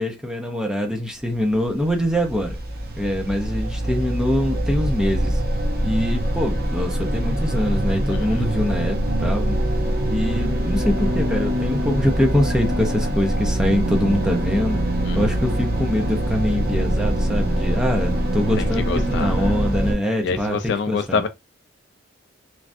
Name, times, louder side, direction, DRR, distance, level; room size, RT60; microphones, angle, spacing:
voice 1, 0.0-2.6 3.0-5.4 5.8-9.6 10.1-14.8 15.1-21.2, left 1 dB, 5° right, 0.5 m, -24 dB
sound 1, 1.5-20.0, right 1 dB, 50° right, 0.8 m, -23 dB
voice 2, 8.1-8.5 15.0-15.3 18.6-19.6 20.2-21.3, left 5 dB, 55° left, 0.3 m, -27 dB
3.2 x 2.3 x 2.5 m
head